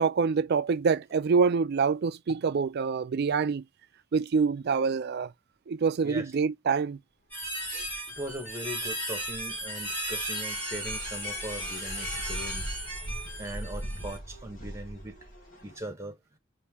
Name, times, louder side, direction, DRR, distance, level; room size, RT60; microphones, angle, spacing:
voice 1, 0.0-3.6 4.1-5.3 5.7-7.0 7.7-7.9, right 5 dB, 50° right, 0.4 m, -26 dB
voice 2, 6.0-6.3 8.2-12.8 13.0-15.2 15.6-16.2, right 1 dB, 15° right, 1.2 m, -40 dB
sound 1, 7.3-14.2, right 1 dB, 10° left, 2.4 m, -35 dB
sound 2, 7.4-15.8, equal, 45° left, 1.6 m, -42 dB
4.2 x 2.7 x 3.5 m
head